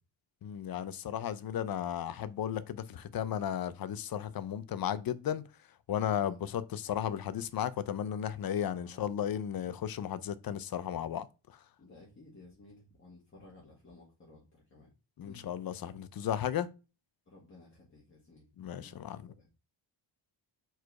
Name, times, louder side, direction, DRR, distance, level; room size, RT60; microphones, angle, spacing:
voice 1, 0.4-5.4 5.9-11.3 15.2-16.7 18.6-19.2, left 9 dB, 50° left, 0.6 m, -34 dB
voice 2, 6.1-6.6 8.8-9.3 9.6-9.8 11.8-14.9 15.2-15.5 16.2-16.3 17.3-18.5 18.8-19.0 19.2-19.5, left 2 dB, 25° left, 1.8 m, -56 dB
4.7 x 4.6 x 4.7 m
wide cardioid pair, 160°, 47 cm